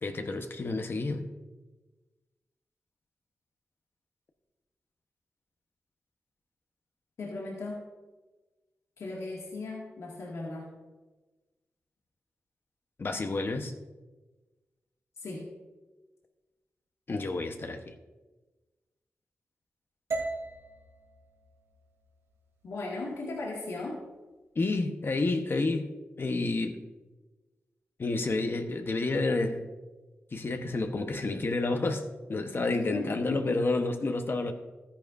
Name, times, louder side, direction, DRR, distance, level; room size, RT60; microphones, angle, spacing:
voice 1, 0.0-1.2 13.0-13.7 17.1-17.9 24.5-26.8 28.0-29.7 30.3-32.0 32.3-34.5, left 3 dB, 50° left, 6 dB, 1.0 m, -30 dB
voice 2, 7.2-7.9 9.0-10.7 15.2-15.5 22.6-24.0 32.7-33.5, left 2 dB, 90° left, -3 dB, 2.0 m, -37 dB
sound 1, 20.1-24.2, right 3 dB, 80° right, 2.3 m, -40 dB
13.5 x 10.0 x 2.6 m, 1.2 s
cardioid pair, 70°, 5 cm